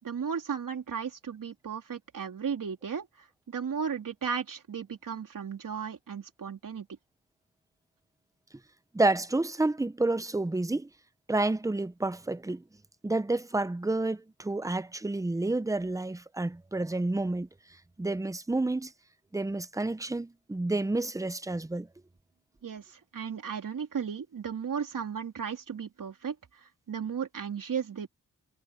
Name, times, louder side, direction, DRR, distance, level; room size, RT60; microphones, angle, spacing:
voice 1, 0.0-6.9 22.6-28.1, right 7 dB, 80° right, 3.5 m, -35 dB
voice 2, 8.9-10.9 11.3-12.6 13.0-17.5 18.0-18.9 19.3-21.9, right 2 dB, 10° right, 0.6 m, -29 dB
wide cardioid pair, 130°, 32 cm